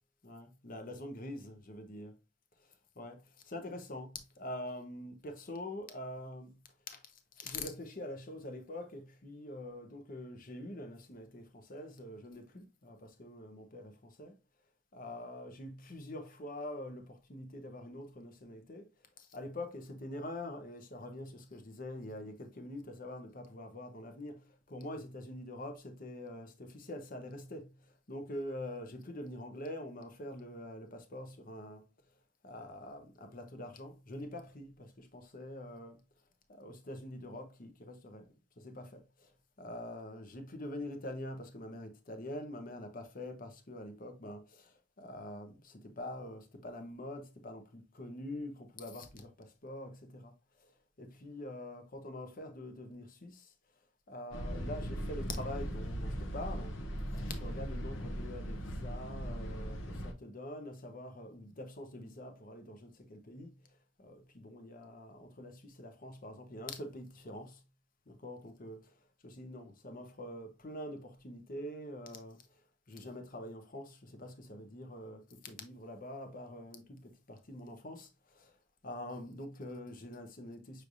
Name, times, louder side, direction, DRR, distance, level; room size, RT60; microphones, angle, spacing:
voice 1, 0.2-2.1 3.0-14.4 14.9-18.9 19.2-31.8 32.4-36.0 36.5-38.3 38.6-39.3 39.6-50.3 50.6-50.7 51.0-53.5 54.1-56.8 57.1-67.6 68.1-69.0 69.2-72.6 72.9-78.5 78.8-80.8, left 1 dB, 45° left, 0.8 m, -45 dB
sound 1, 54.3-60.1, equal, 70° left, 0.9 m, -39 dB
6.1 x 3.2 x 2.6 m
head